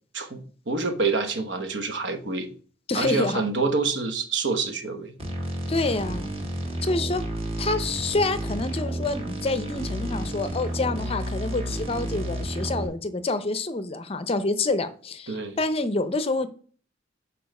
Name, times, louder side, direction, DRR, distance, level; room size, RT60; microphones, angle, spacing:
voice 1, 0.1-2.5 2.9-5.1 15.3-15.6, right 3 dB, 65° right, 1.0 m, -27 dB
voice 2, 2.9-3.4 5.7-6.3 6.8-7.2 7.6-16.5, left 2 dB, 30° left, 0.6 m, -27 dB
sound 1, 5.2-12.9, right 1 dB, 30° right, 1.7 m, -31 dB
7.0 x 4.5 x 5.3 m
head